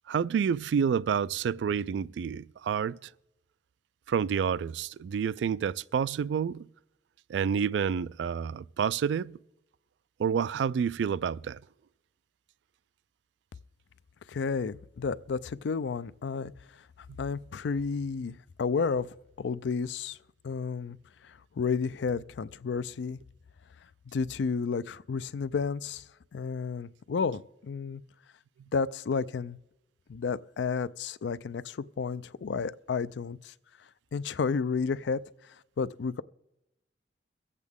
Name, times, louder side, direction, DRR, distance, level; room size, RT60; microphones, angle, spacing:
voice 1, 0.1-3.1 4.1-6.7 7.3-9.4 10.2-11.6 17.1-17.2, right 7 dB, 80° right, 0.3 m, -29 dB
voice 2, 14.3-16.5 17.2-19.1 19.4-20.2 20.4-21.0 21.2-23.2 24.1-26.0 26.3-28.0 28.7-29.6 30.1-33.5 34.1-35.2 35.5-36.2, left 5 dB, 80° left, 0.4 m, -31 dB
22.5 x 8.2 x 3.6 m
head